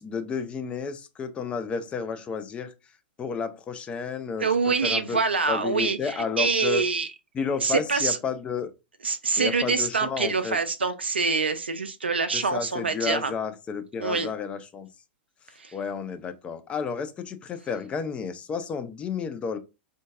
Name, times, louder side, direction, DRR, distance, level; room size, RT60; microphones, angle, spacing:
voice 1, 0.0-2.7 3.2-4.5 4.8-5.2 5.5-6.8 7.3-8.7 9.4-10.6 12.3-14.9 15.7-19.6, left 5 dB, 20° left, 0.4 m, -31 dB
voice 2, 4.4-7.1 7.6-8.2 9.0-13.3 14.0-14.3 15.6-15.8, right 4 dB, 75° right, 0.3 m, -25 dB
3.7 x 2.5 x 2.4 m
figure-of-eight pair, 100°, 6 cm